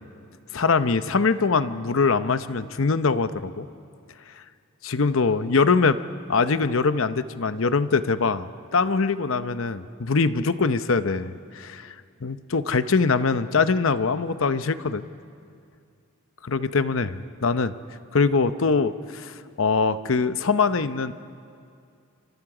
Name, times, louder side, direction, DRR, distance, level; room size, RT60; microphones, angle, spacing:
voice 1, 0.5-3.7 4.8-6.0 6.3-12.0 12.2-15.1 16.4-17.7 18.1-21.1, left 4 dB, 65° left, 12 dB, 0.8 m, -23 dB
29.0 x 26.0 x 5.0 m, 2.4 s
head